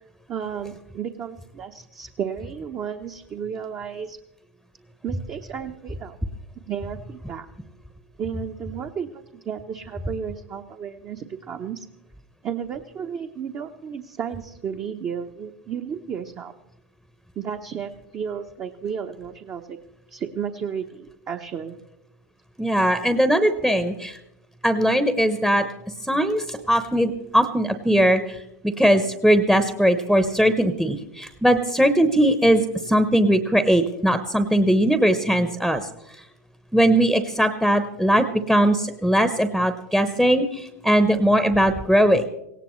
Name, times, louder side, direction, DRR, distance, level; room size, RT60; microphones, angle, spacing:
voice 1, 0.3-4.2 5.0-6.2 6.7-7.5 8.2-11.9 12.4-16.5 17.4-19.8 20.1-21.8, right 7 dB, 35° right, 4 dB, 0.8 m, -33 dB
voice 2, 22.6-24.2 24.6-25.7 26.1-28.4 28.8-32.6 32.9-35.8 36.7-42.3, equal, ahead, 11 dB, 0.8 m, -20 dB
18.0 x 17.0 x 3.1 m, 0.85 s
hypercardioid pair, 95°, 9 cm